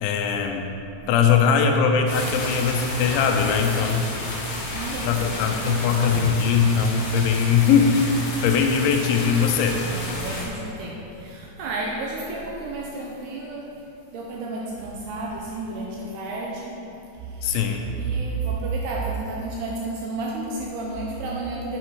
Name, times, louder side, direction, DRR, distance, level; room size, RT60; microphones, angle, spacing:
voice 1, 0.0-0.7 1.1-4.1 5.0-8.1 8.4-9.8 17.4-17.8, left 6 dB, 85° left, 4 dB, 3.1 m, -20 dB
sound 1, 2.0-10.4, left 2 dB, 55° left, 2.1 m, -31 dB
voice 2, 4.7-5.9 9.9-13.7 14.1-16.8 17.2-17.7 18.0-21.8, right 3 dB, 80° right, -2 dB, 2.4 m, -31 dB
8.6 x 8.0 x 4.6 m, 2.9 s
omnidirectional pair, 5.4 m